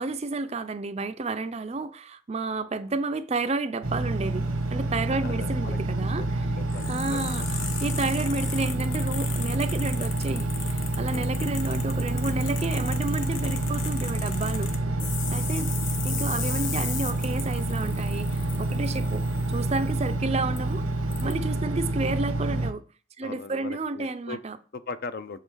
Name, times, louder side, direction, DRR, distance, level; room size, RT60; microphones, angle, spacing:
voice 1, 0.0-6.5 6.9-14.7 15.3-15.7 16.0-20.8 21.2-22.9 23.2-24.6, right 3 dB, 30° right, 0.4 m, -31 dB
Engine, 3.8-22.7, right 2 dB, 85° right, 1.0 m, -28 dB
voice 2, 5.2-7.3 11.1-11.3 15.0-15.1 16.3-16.7 18.7-19.1 21.4-21.6 23.2-24.4 24.7-25.4, left 4 dB, 45° left, 0.5 m, -40 dB
sound 1, 6.7-20.1 20.6-20.7 21.1-21.3, left 7 dB, 65° left, 1.1 m, -37 dB
7.6 x 3.7 x 6.2 m
head